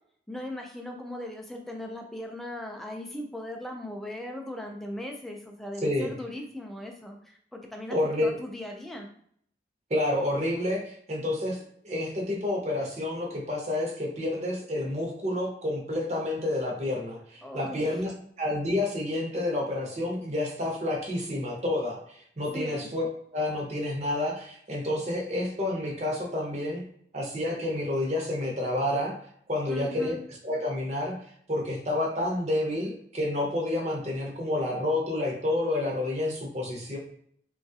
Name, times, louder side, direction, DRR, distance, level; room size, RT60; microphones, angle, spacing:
voice 1, 0.3-8.0 8.2-9.1 17.4-18.0 22.5-22.9 29.7-30.2, left 1 dB, ahead, 1 dB, 0.3 m, -38 dB
voice 2, 7.9-8.3 9.9-18.1 18.4-23.1 23.3-26.8 27.1-29.1 29.5-30.2 30.4-31.1 31.5-37.0, left 1 dB, 40° right, 0 dB, 0.7 m, -29 dB
3.0 x 2.3 x 2.7 m, 0.65 s
head